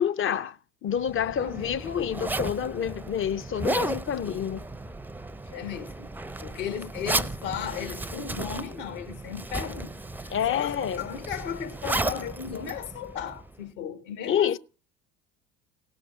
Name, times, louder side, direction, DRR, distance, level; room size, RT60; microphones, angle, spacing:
voice 1, 0.0-4.6 10.3-11.1 14.3-14.6, left 9 dB, 35° left, 0.7 m, -28 dB
Zipper (clothing), 0.9-13.6, right 2 dB, 5° right, 0.6 m, -34 dB
voice 2, 1.2-1.7 5.5-6.1 6.4-9.9 10.2-14.6, left 8 dB, 70° left, 2.7 m, -36 dB
18.0 x 6.0 x 9.1 m
hypercardioid pair, 65°, 37 cm